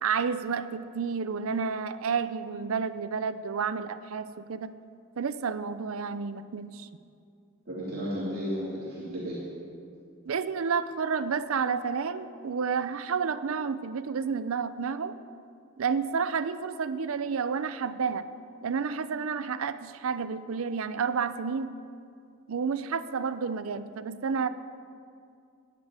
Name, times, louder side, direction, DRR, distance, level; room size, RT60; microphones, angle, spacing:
voice 1, 0.0-4.7 5.2-6.9 10.3-15.1 15.8-18.3 18.6-21.7 22.5-24.5, right 5 dB, 70° right, 13 dB, 0.5 m, -30 dB
voice 2, 7.7-9.4, equal, 45° right, -8 dB, 2.9 m, -33 dB
15.0 x 10.0 x 4.8 m, 2.4 s
head